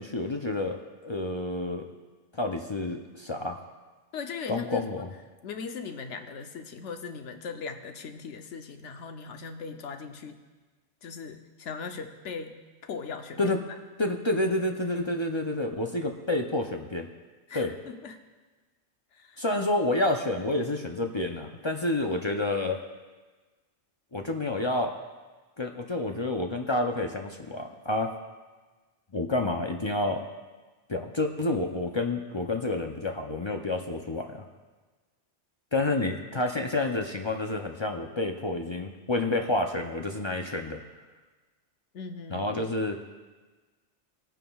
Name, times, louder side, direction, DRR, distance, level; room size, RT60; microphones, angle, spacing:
voice 1, 0.0-1.9 2.3-3.6 4.5-5.1 13.4-13.6 14.0-17.1 17.5-17.7 19.4-22.8 24.1-25.0 25.6-28.1 29.1-30.2 30.9-34.4 35.7-40.8 42.3-43.0, left 2 dB, 35° left, 3 dB, 0.4 m, -29 dB
voice 2, 4.1-4.8 5.4-10.4 11.0-13.5 17.5-18.2 19.1-19.4 41.9-42.5, left 5 dB, 85° left, 6 dB, 1.1 m, -39 dB
20.5 x 9.1 x 2.3 m, 1.3 s
omnidirectional pair, 1.2 m